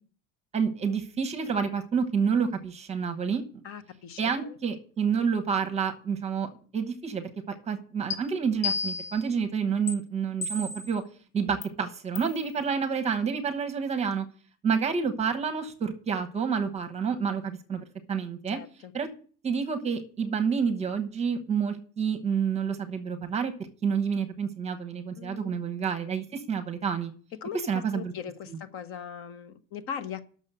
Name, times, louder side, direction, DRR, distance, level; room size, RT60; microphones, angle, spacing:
voice 1, 0.5-3.4 4.2-11.0 11.3-14.2 14.6-18.6 18.9-19.1 19.4-23.5 23.8-27.1 27.7-28.1 28.5-28.6, right 6 dB, 20° right, 1.1 m, -29 dB
voice 2, 3.6-4.5 18.5-18.9 25.2-25.6 27.4-30.2, left 8 dB, 45° left, 1.1 m, -39 dB
sound 1, 8.1-8.2 8.6-9.2 9.9-10.0 10.4-10.9 11.6-11.7 12.2-12.4, left 4 dB, 65° left, 2.4 m, -32 dB
10.5 x 6.4 x 6.8 m
cardioid pair, 165°, 30 cm